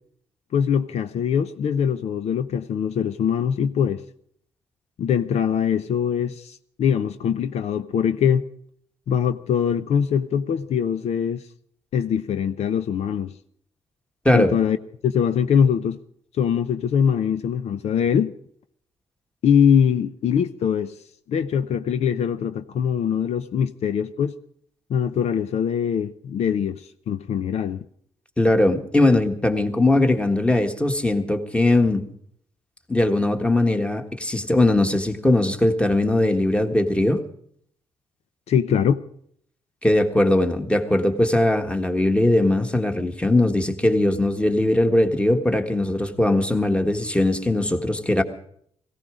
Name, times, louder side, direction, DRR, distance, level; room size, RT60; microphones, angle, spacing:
voice 1, 0.5-4.0 5.0-8.4 9.1-11.4 11.9-13.3 14.3-14.8 15.0-16.0 16.4-18.3 19.4-20.9 21.3-24.3 24.9-27.8 38.5-39.0, left 8 dB, 75° left, 0.7 m, -22 dB
voice 2, 28.4-32.0 32.9-37.2 39.8-48.2, left 1 dB, 10° left, 1.6 m, -20 dB
17.5 x 16.5 x 5.0 m
cardioid pair, 100°, 11 cm